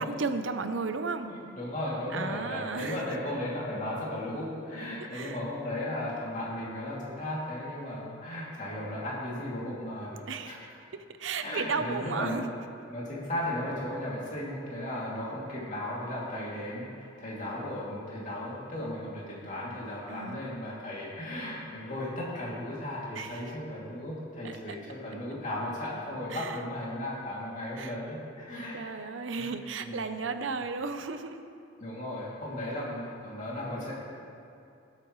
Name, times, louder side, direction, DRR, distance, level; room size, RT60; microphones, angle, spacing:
voice 1, 0.0-1.3 2.1-3.0 5.1-5.4 10.1-10.5 11.2-12.4 20.1-20.4 23.2-23.4 24.4-24.6 26.3-26.6 27.8-27.9 28.7-31.4, right 4 dB, 85° right, 9 dB, 0.7 m, -34 dB
voice 2, 1.3-10.6 11.4-12.5 12.9-28.8 29.4-29.5 29.8-30.0 31.8-33.9, left 1 dB, 40° left, -6 dB, 2.6 m, -36 dB
18.5 x 8.4 x 3.2 m, 2.6 s
head